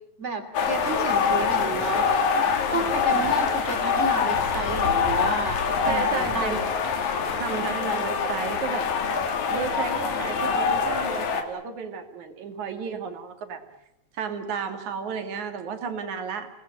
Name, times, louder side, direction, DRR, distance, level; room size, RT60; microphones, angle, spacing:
voice 1, 0.2-2.1 2.7-6.6, right 2 dB, 25° right, 7 dB, 2.8 m, -31 dB
sound 1, 0.5-11.4, left 5 dB, 80° left, 3.3 m, -25 dB
voice 2, 5.9-6.6 7.4-9.1 9.5-13.6 14.1-16.5, right 6 dB, 80° right, 7 dB, 3.5 m, -33 dB
28.5 x 19.0 x 7.8 m, 0.78 s
omnidirectional pair, 3.3 m